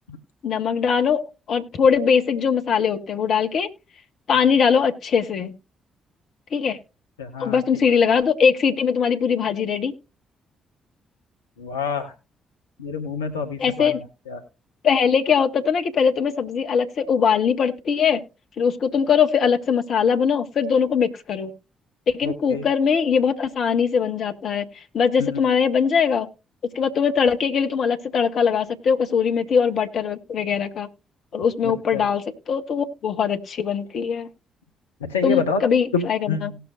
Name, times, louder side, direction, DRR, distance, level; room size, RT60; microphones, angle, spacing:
voice 1, 0.4-3.7 4.3-5.5 6.5-6.8 7.4-9.9 13.6-14.0 14.8-18.2 18.6-21.5 22.1-26.3 26.7-30.9 31.3-34.3 35.2-36.5, left 6 dB, 55° left, 7 dB, 1.2 m, -21 dB
voice 2, 7.2-7.6 11.6-12.1 12.8-14.0 14.3-14.4 22.2-22.6 25.2-25.4 31.6-32.1 35.0-35.6 35.9-36.6, left 5 dB, 85° left, 5 dB, 0.7 m, -27 dB
18.5 x 6.8 x 2.5 m, 0.31 s
figure-of-eight pair, 40°, 0 cm